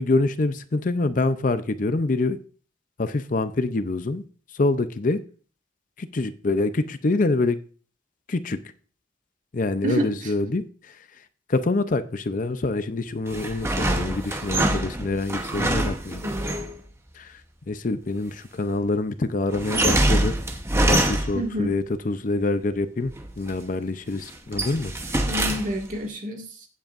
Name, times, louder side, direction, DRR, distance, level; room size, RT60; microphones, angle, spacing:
voice 1, 0.0-2.4 3.0-4.2 4.5-5.2 6.0-7.6 8.3-8.6 9.5-11.0 11.5-16.2 17.1-17.4 17.7-20.3 20.7-23.1 23.4-24.9, left 2 dB, 45° left, 12 dB, 0.6 m, -25 dB
voice 2, 9.8-10.3 16.2-16.5 21.3-21.8 25.3-26.7, equal, 45° right, 2 dB, 2.0 m, -29 dB
sound 1, 13.3-16.8 19.5-21.6 23.1-23.6 24.1-26.0, right 1 dB, 15° right, 0.9 m, -25 dB
16.0 x 8.0 x 2.5 m, 0.39 s
head